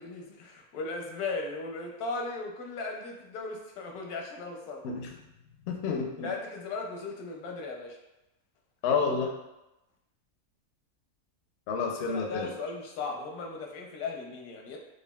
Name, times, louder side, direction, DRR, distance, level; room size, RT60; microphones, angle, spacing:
voice 1, 0.0-4.8 6.2-8.0 12.0-14.8, left 3 dB, 85° left, 1 dB, 1.1 m, -37 dB
voice 2, 5.7-6.3 8.8-9.3 11.7-12.5, left 5 dB, 65° left, 2 dB, 0.6 m, -29 dB
4.9 x 2.4 x 2.2 m, 0.95 s
omnidirectional pair, 1.5 m